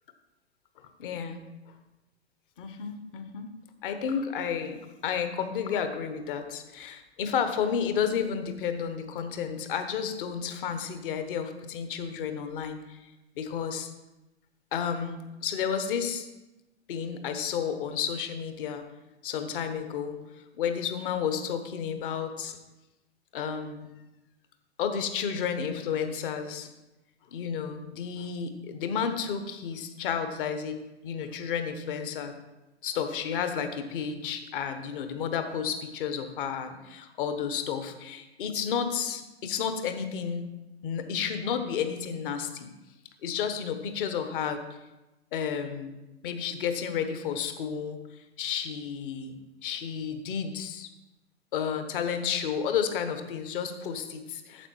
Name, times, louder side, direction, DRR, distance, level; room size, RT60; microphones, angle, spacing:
voice 1, 1.0-1.4 2.6-3.5 3.8-13.0 13.4-13.9 14.7-16.3 16.9-18.8 19.2-20.2 20.5-22.6 23.3-23.9 24.8-26.7 27.3-30.8 31.0-32.3 32.8-40.5 40.8-42.7 43.2-44.6 45.3-45.9 46.2-48.0 48.4-50.9 51.5-54.7, left 7 dB, 50° left, 8 dB, 1.2 m, -31 dB
9.0 x 7.3 x 4.5 m, 1.0 s
figure-of-eight pair, 105°, 34 cm